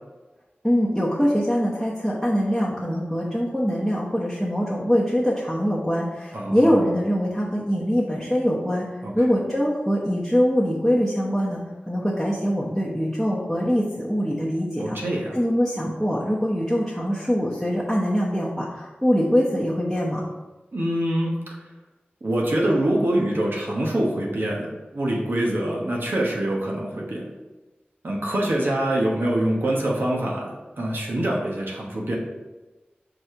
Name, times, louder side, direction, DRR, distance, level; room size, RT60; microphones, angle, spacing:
voice 1, 0.6-8.8 9.1-11.6 11.9-15.0 15.3-20.2, equal, ahead, -7 dB, 1.0 m, -23 dB
voice 2, 6.3-6.8 9.0-9.1 14.8-15.4 20.7-21.3 22.2-27.3 28.0-32.2, right 1 dB, 65° right, -2 dB, 1.2 m, -25 dB
4.9 x 4.3 x 4.4 m, 1.2 s
wide cardioid pair, 50°, 4 cm